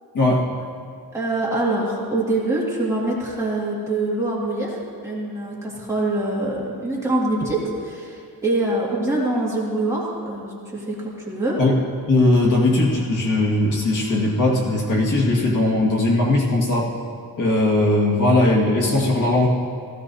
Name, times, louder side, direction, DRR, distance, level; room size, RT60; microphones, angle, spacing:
voice 1, 1.1-11.6, right 2 dB, 10° right, -6 dB, 2.0 m, -24 dB
voice 2, 12.1-16.9 17.4-19.5, left 2 dB, 55° left, -3 dB, 1.9 m, -19 dB
16.0 x 15.0 x 2.8 m, 2.3 s
wide cardioid pair, 175°, 37 cm